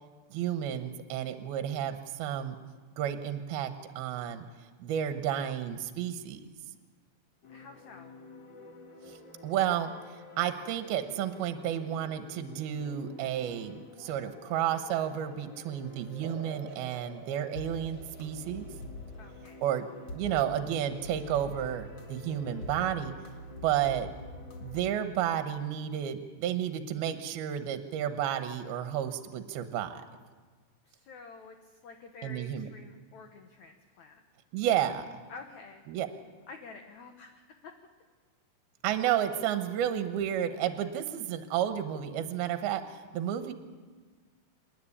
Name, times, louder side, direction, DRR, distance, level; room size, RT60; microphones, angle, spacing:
voice 1, 0.3-2.6 3.0-4.5 4.8-6.4 9.1-9.2 9.4-18.7 19.6-19.9 20.1-23.1 23.6-24.1 24.6-30.0 32.2-32.7 34.5-35.1 35.9-36.1 38.8-43.5, right 10 dB, 70° right, 8 dB, 2.8 m, -31 dB
sound 1, 7.4-24.9, left 2 dB, 50° left, 1.3 m, -47 dB
voice 2, 7.5-8.1 19.2-19.7 30.8-34.2 35.3-35.9 36.5-37.7, left 4 dB, 70° left, 5 dB, 1.7 m, -49 dB
sound 2, 16.2-23.2, right 7 dB, 50° right, 2.7 m, -52 dB
27.0 x 10.5 x 9.9 m, 1.4 s
omnidirectional pair, 4.9 m